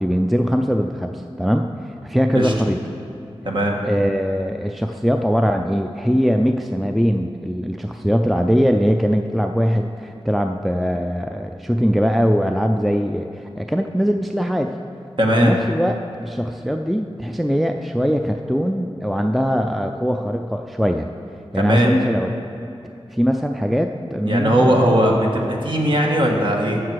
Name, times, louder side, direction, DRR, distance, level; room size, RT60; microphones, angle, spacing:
voice 1, 0.0-1.7 2.0-2.8 3.8-14.7 15.4-15.9 16.2-21.1 21.5-22.3 23.1-24.9, equal, ahead, 5 dB, 0.4 m, -21 dB
voice 2, 3.4-3.8 15.2-15.5 21.5-21.9 24.2-26.8, equal, 50° right, -1 dB, 1.6 m, -18 dB
13.5 x 6.7 x 4.7 m, 2.7 s
wide cardioid pair, 55°, 10 cm